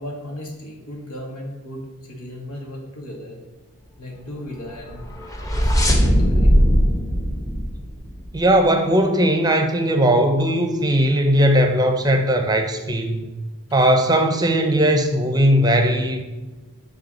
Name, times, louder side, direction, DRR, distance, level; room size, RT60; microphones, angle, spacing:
voice 1, 0.0-3.4 4.0-5.1 5.4-6.5 13.7-13.9, left 1 dB, 85° left, -1 dB, 2.2 m, -36 dB
sound 1, 4.9-8.5, equal, 15° left, 0.9 m, -19 dB
voice 2, 8.3-13.2 13.7-16.2, right 1 dB, 15° right, 6 dB, 0.7 m, -18 dB
9.6 x 3.8 x 6.3 m, 1.2 s
head